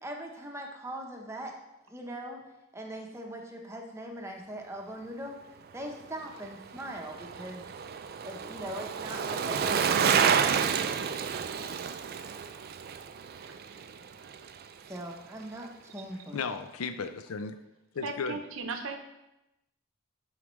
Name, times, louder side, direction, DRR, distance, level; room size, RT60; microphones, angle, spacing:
voice 1, 0.0-1.5 1.9-2.4 2.7-5.4 5.7-7.7 8.2-11.5 14.9-16.6, right 1 dB, 10° right, 1 dB, 0.8 m, -41 dB
Bicycle, 6.2-14.7 15.0-15.1, right 7 dB, 45° right, 0.3 m, -30 dB
voice 2, 16.3-17.6 17.9-18.4, left 5 dB, 80° left, 10 dB, 0.5 m, -35 dB
voice 3, 18.0-19.0, right 3 dB, 70° right, 5 dB, 0.8 m, -36 dB
9.3 x 4.9 x 3.1 m, 0.93 s
head